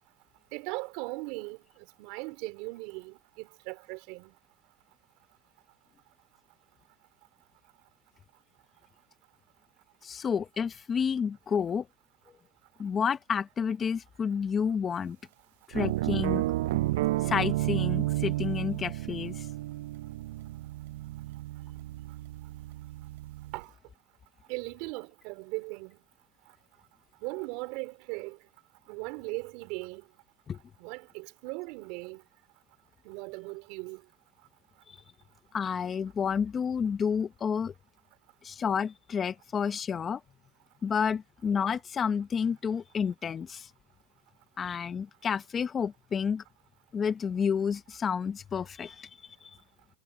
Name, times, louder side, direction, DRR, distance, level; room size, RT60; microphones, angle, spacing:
voice 1, 0.5-1.6 2.0-4.3 23.5-23.7 24.5-26.0 27.2-28.4 28.9-30.0 30.8-32.2 33.0-34.0, right 26 dB, 55° right, 3.8 m, -38 dB
voice 2, 10.0-11.9 12.8-15.2 15.7-16.4 17.2-19.5 30.5-30.6 34.9-35.0 35.5-37.7 38.4-40.2 40.8-43.7 44.6-46.4 46.9-49.1 49.4-49.5, left 6 dB, 20° left, 0.8 m, -30 dB
sound 1, 15.7-23.6, right 17 dB, 75° right, 0.3 m, -32 dB
supercardioid pair, 140°, 0 cm